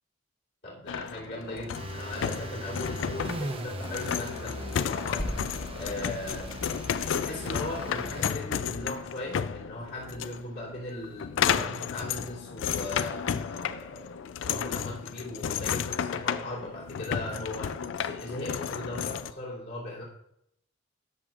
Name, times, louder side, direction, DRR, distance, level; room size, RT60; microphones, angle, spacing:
voice 1, 0.6-6.6 7.1-20.0, left 1 dB, 50° left, -6 dB, 3.1 m, -38 dB
sound 1, 0.9-19.3, left 8 dB, 70° left, 0.3 m, -33 dB
sound 2, 1.7-8.3, right 1 dB, 30° right, 0.8 m, -39 dB
sound 3, 5.2-9.4, equal, 25° left, 1.6 m, -41 dB
13.0 x 6.7 x 2.5 m, 0.75 s
head